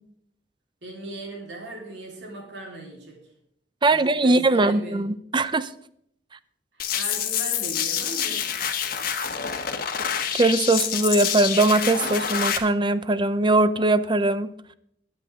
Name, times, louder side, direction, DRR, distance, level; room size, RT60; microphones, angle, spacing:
voice 1, 0.8-3.2 3.9-5.2 6.9-8.5, right 2 dB, 85° right, -1 dB, 4.1 m, -38 dB
voice 2, 3.8-5.7 10.3-14.5, right 2 dB, 25° right, 14 dB, 0.6 m, -21 dB
sound 1, 6.8-12.6, left 8 dB, 55° left, 1.3 m, -27 dB
21.0 x 8.0 x 3.7 m, 0.71 s
head